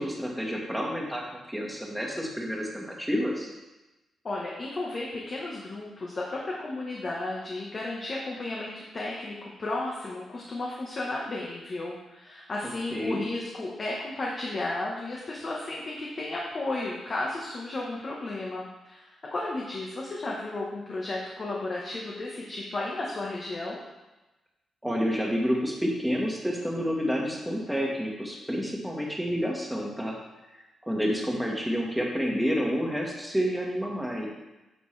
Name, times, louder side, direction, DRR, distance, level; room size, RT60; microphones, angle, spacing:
voice 1, 0.0-3.5 12.6-13.2 24.8-30.2 30.5-34.3, equal, ahead, -2 dB, 1.6 m, -29 dB
voice 2, 4.2-23.8, left 2 dB, 35° left, -3 dB, 1.3 m, -34 dB
9.8 x 6.9 x 3.4 m, 1.1 s
cardioid pair, 120°, 0 cm